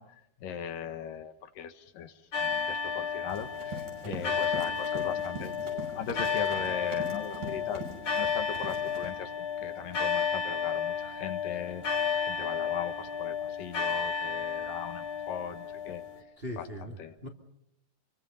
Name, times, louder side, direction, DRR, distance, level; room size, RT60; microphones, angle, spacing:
voice 1, 0.0-16.0 16.6-16.7 17.0-17.1, left 8 dB, 70° left, 9 dB, 2.8 m, -39 dB
sound 1, 2.3-16.2, left 6 dB, 35° left, 3.6 m, -32 dB
Run, 3.3-9.1, right 2 dB, 65° right, 7.8 m, -43 dB
voice 2, 4.0-4.3 16.4-17.3, equal, 20° right, 2 dB, 2.0 m, -40 dB
28.0 x 23.5 x 5.6 m, 0.80 s
omnidirectional pair, 4.1 m